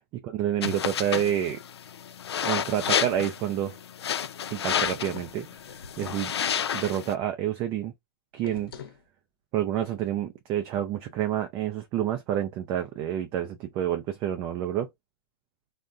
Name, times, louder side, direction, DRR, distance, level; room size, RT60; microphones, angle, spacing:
voice 1, 0.2-1.6 2.4-3.8 4.5-5.5 6.0-6.3 6.7-7.9 8.3-8.7 9.5-14.9, right 11 dB, 20° right, 0.3 m, -28 dB
sound 1, 0.6-7.1, left 8 dB, 90° left, 0.4 m, -31 dB
sound 2, 4.7-6.3 8.4-9.0, left 6 dB, 60° left, 0.8 m, -45 dB
3.4 x 2.1 x 2.5 m
hypercardioid pair, 155°, 13 cm